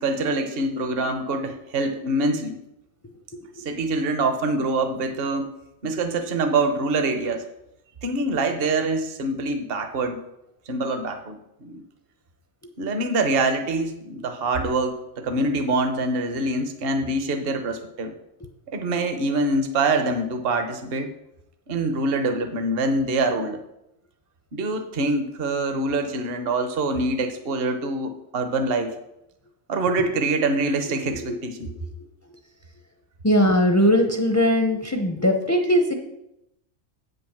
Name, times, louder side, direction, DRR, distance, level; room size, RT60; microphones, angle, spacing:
voice 1, 0.0-2.6 3.6-5.6 5.8-7.5 8.0-10.2 10.7-11.8 12.8-18.1 18.7-21.1 21.7-23.6 24.5-28.9 29.7-31.7, right 2 dB, 45° right, 7 dB, 1.1 m, -25 dB
voice 2, 33.2-35.9, equal, 15° left, 4 dB, 0.6 m, -20 dB
8.5 x 5.5 x 7.2 m, 0.84 s
omnidirectional pair, 1.4 m